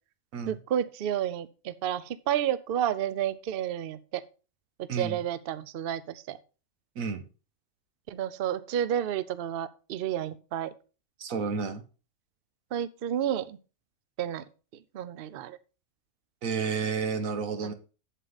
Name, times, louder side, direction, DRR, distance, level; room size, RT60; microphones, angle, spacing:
voice 1, 0.5-4.2 4.8-6.4 8.1-10.7 12.7-13.6 14.2-14.4 14.9-15.6 17.6-17.7, right 10 dB, 55° right, 15 dB, 0.7 m, -31 dB
voice 2, 11.2-11.8 16.4-17.7, right 5 dB, 80° right, 10 dB, 1.4 m, -31 dB
8.2 x 7.5 x 4.0 m, 0.34 s
omnidirectional pair, 1.4 m